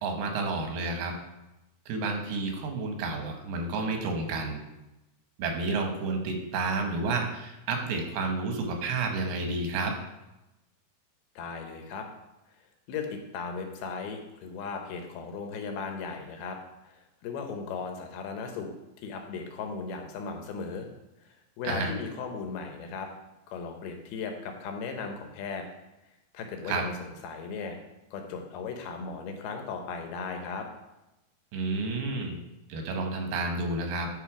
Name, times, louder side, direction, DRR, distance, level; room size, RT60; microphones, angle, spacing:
voice 1, 0.0-1.1 1.9-4.6 5.4-10.0 21.6-21.9 26.6-26.8 31.5-32.4 32.7-34.1, right 3 dB, 85° right, 3 dB, 3.2 m, -30 dB
voice 2, 11.4-12.1 12.9-16.6 16.9-17.0 17.2-18.7 19.0-20.9 21.6-23.1 23.5-25.7 26.3-27.8 28.1-30.7, left 5 dB, 80° left, 4 dB, 2.8 m, -36 dB
11.0 x 3.8 x 4.8 m, 0.96 s
omnidirectional pair, 4.4 m